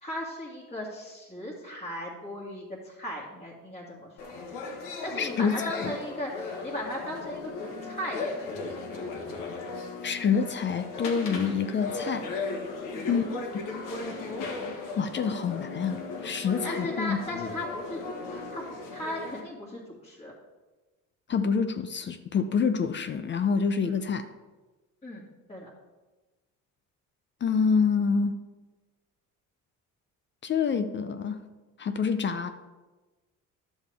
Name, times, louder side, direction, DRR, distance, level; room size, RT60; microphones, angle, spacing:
voice 1, 0.0-4.1 5.0-8.7 12.9-13.1 16.6-18.0 18.3-18.6 18.9-20.3 23.8-24.0 25.0-25.2 25.5-25.7, left 1 dB, 20° left, -7 dB, 1.9 m, -37 dB
sound 1, 4.2-19.4, left 3 dB, 75° left, 1.5 m, -36 dB
voice 2, 5.2-5.9 10.0-12.3 13.1-13.2 15.0-17.2 21.3-24.2 27.4-28.3 30.4-31.4 31.8-32.5, left 6 dB, 35° left, 9 dB, 0.6 m, -27 dB
11.0 x 7.2 x 3.5 m, 1.2 s
cardioid pair, 110°, 32 cm